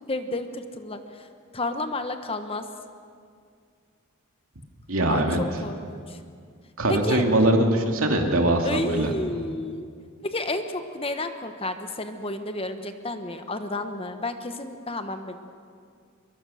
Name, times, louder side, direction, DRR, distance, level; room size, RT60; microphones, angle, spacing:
voice 1, 0.1-1.3 1.5-2.6 5.1-6.2 6.9-7.3 8.6-9.9 10.2-15.4, left 2 dB, 25° left, 8 dB, 1.2 m, -31 dB
voice 2, 4.9-5.4 6.8-9.1, right 1 dB, 80° right, 3 dB, 2.5 m, -22 dB
24.0 x 22.0 x 6.5 m, 2.2 s
head